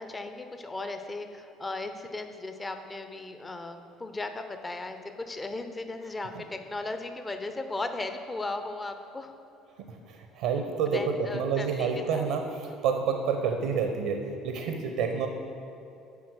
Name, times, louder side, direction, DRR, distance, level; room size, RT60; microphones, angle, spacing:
voice 1, 0.0-9.3 10.9-12.2, left 2 dB, 25° left, 7 dB, 0.7 m, -36 dB
voice 2, 9.7-15.3, right 6 dB, 70° right, 5 dB, 0.7 m, -29 dB
8.4 x 5.8 x 6.3 m, 2.7 s
hypercardioid pair, 60°, 0 cm